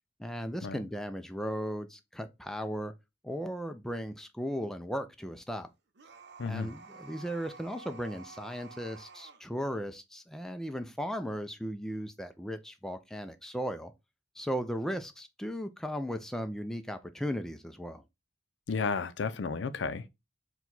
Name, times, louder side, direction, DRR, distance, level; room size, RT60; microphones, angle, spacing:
voice 1, 0.2-2.9 3.2-5.7 6.5-13.9 14.4-18.0, equal, 5° left, 0.3 m, -36 dB
sound 1, 6.0-9.4, right 4 dB, 65° right, 0.6 m, -51 dB
voice 2, 6.4-6.7 18.7-20.1, left 5 dB, 75° left, 0.5 m, -32 dB
4.5 x 2.3 x 3.9 m
head